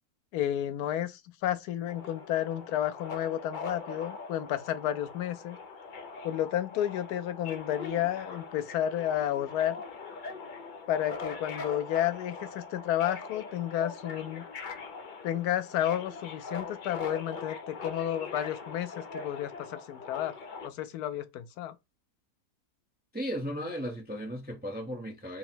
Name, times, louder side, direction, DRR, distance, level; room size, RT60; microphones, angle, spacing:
voice 1, 0.3-5.6 6.2-9.8 10.9-14.4 15.2-20.3 20.6-21.7, left 11 dB, 85° left, 1.1 m, -31 dB
Subway metro underground, 1.9-20.7, left 4 dB, 60° left, 0.5 m, -42 dB
voice 2, 23.1-25.4, equal, 10° right, 0.4 m, -35 dB
3.7 x 2.0 x 4.2 m
omnidirectional pair, 1.6 m